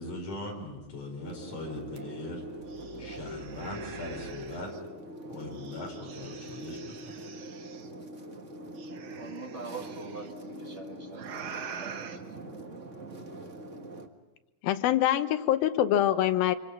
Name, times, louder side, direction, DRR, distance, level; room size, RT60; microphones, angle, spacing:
voice 1, 0.0-2.4 3.0-4.8 5.3-7.3, left 2 dB, 45° left, 1 dB, 6.0 m, -40 dB
sound 1, 1.2-14.1, right 1 dB, 85° right, 0.6 m, -43 dB
sound 2, 2.0-2.1 2.4-4.8 5.5-7.9 8.8-10.3 11.1-12.2, right 7 dB, 60° right, 1.4 m, -45 dB
voice 2, 9.2-12.3, right 3 dB, 30° right, 2 dB, 1.4 m, -44 dB
voice 3, 14.6-16.6, left 12 dB, 80° left, 10 dB, 2.8 m, -24 dB
26.0 x 24.5 x 6.1 m, 1.0 s
omnidirectional pair, 4.2 m